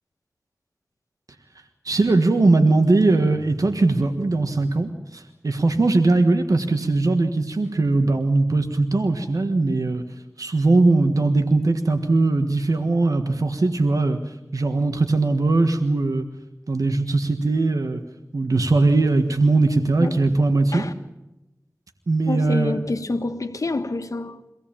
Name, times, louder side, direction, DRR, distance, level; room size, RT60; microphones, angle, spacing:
voice 1, 1.8-10.0 10.4-14.2 14.5-16.3 16.7-18.0 18.3-20.8 22.1-22.7, right 2 dB, 85° right, 1.5 m, -20 dB
voice 2, 22.3-24.4, left 2 dB, 75° left, 1.5 m, -27 dB
24.5 x 17.0 x 8.8 m
wide cardioid pair, 60°, 6 cm